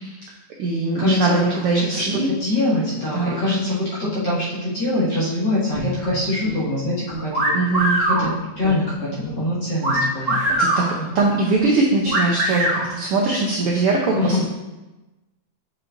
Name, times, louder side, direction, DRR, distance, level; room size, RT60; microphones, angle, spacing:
voice 1, 0.6-2.3 3.1-3.5 7.5-8.0 10.2-10.9 11.1-14.4, right 3 dB, 70° right, -2 dB, 1.3 m, -21 dB
voice 2, 1.7-7.5 8.0-10.4 11.0-11.1 14.1-14.4, left 1 dB, 40° left, -9 dB, 2.2 m, -24 dB
Guitar, 5.7-7.4 7.7-9.5 9.9-10.1 10.5-10.8 11.1-11.3 11.5-11.7 12.0-12.2, left 1 dB, 80° left, 2.8 m, -34 dB
sound 1, 7.3-8.2 9.8-10.8 12.1-12.8, right 1 dB, 40° right, 1.2 m, -20 dB
7.5 x 6.3 x 2.5 m, 1.1 s
omnidirectional pair, 3.4 m